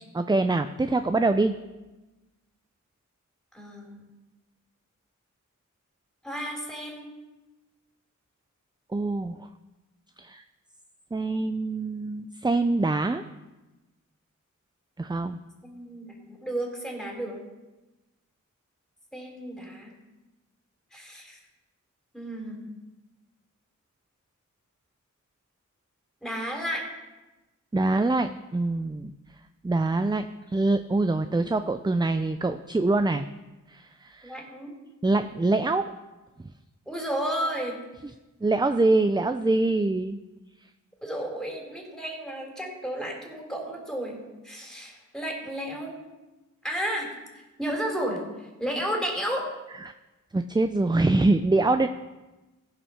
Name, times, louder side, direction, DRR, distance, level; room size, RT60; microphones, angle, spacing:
voice 1, 0.1-1.5 8.9-9.4 10.2-10.4 11.1-13.2 15.0-15.4 27.7-29.1 29.6-33.3 33.7-34.4 35.0-35.8 38.4-40.2 49.8-49.9 50.3-51.9, right 2 dB, 15° right, 9 dB, 0.4 m, -24 dB
voice 2, 3.5-4.0 6.2-7.1 15.6-17.4 19.1-19.9 20.9-21.4 22.1-22.7 26.2-26.8 34.2-34.7 36.9-37.8 41.0-46.0 46.6-47.1 47.3-49.4, right 1 dB, ahead, 0 dB, 3.6 m, -33 dB
15.5 x 5.6 x 5.7 m, 1.1 s
cardioid pair, 50°, 32 cm